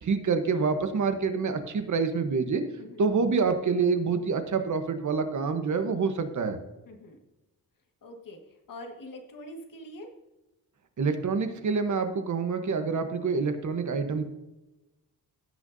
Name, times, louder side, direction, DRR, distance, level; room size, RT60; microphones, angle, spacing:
voice 1, 0.0-2.6 3.0-6.6 11.0-14.2, right 5 dB, 55° right, 8 dB, 1.1 m, -27 dB
voice 2, 6.9-7.2 8.0-8.4 8.7-10.1, left 1 dB, 65° left, 3 dB, 1.7 m, -44 dB
16.0 x 6.3 x 2.7 m, 1.0 s
wide cardioid pair, 130°, 36 cm